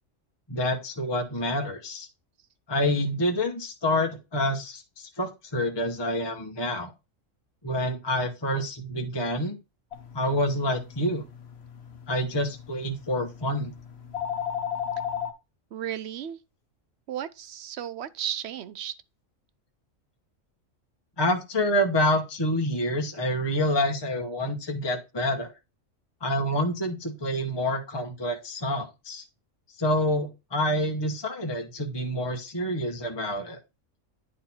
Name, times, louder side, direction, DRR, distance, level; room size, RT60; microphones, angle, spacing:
voice 1, 0.5-2.1 2.7-6.9 7.6-9.6 10.1-11.2 12.1-13.7 21.2-25.5 26.2-29.2 29.8-33.6, left 1 dB, 20° left, 1.1 m, -27 dB
sound 1, 9.9-15.3, left 8 dB, 55° left, 1.2 m, -36 dB
voice 2, 15.7-16.4 17.1-19.0, right 10 dB, 60° right, 0.8 m, -34 dB
10.0 x 4.1 x 4.3 m
omnidirectional pair, 1.4 m